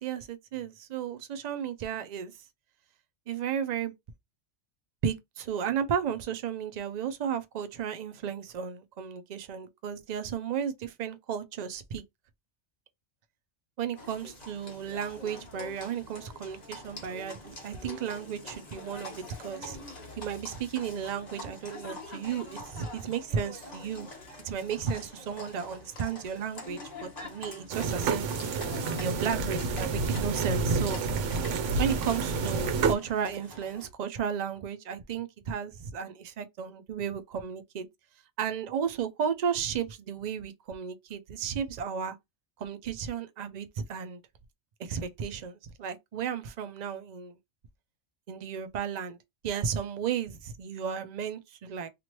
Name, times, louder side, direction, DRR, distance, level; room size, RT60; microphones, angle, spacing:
voice 1, 0.0-2.3 3.3-3.9 5.0-12.0 13.8-19.8 20.2-24.1 24.4-28.3 29.0-31.0 31.8-37.9 38.4-42.2 42.6-44.2 44.8-47.4 48.3-49.2 49.4-51.9, right 7 dB, 60° right, 0.4 m, -34 dB
Livestock farm animals working animals, 13.9-33.9, left 2 dB, 40° left, 1.0 m, -45 dB
sound 1, 27.7-32.9, right 4 dB, 80° right, 0.9 m, -29 dB
2.9 x 2.4 x 3.0 m
omnidirectional pair, 1.2 m